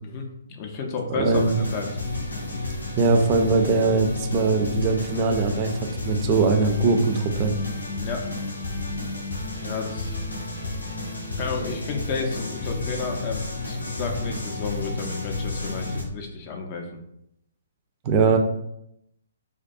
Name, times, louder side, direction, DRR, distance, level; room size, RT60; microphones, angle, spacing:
voice 1, 0.0-1.4 1.7-1.9 7.9-8.3 9.6-10.2 11.4-16.9, left 4 dB, 35° left, 2 dB, 0.4 m, -31 dB
voice 2, 1.2-1.6 3.0-7.5 18.0-18.4, right 4 dB, 30° right, 4 dB, 0.4 m, -21 dB
sound 1, 1.3-16.0, left 2 dB, 80° left, 0.6 m, -31 dB
2.2 x 2.2 x 2.6 m, 0.78 s
figure-of-eight pair, 130°, 0 cm